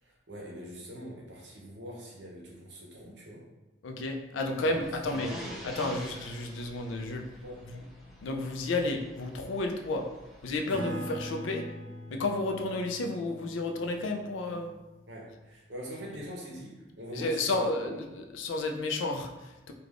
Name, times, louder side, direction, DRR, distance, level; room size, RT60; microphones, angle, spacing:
voice 1, 0.0-3.5 4.6-5.9 7.4-7.7 15.1-17.9, equal, 65° right, -3 dB, 0.7 m, -43 dB
voice 2, 3.8-5.3 5.6-7.3 7.7-7.8 8.2-10.1 10.4-11.7 12.1-14.7 17.1-19.7, left 2 dB, 85° left, 4 dB, 0.4 m, -32 dB
sound 1, 4.7-10.6, equal, ahead, 0.4 m, -47 dB
Acoustic guitar / Strum, 10.7-15.7, equal, 25° right, 0.9 m, -42 dB
3.3 x 2.3 x 2.4 m, 1.1 s
head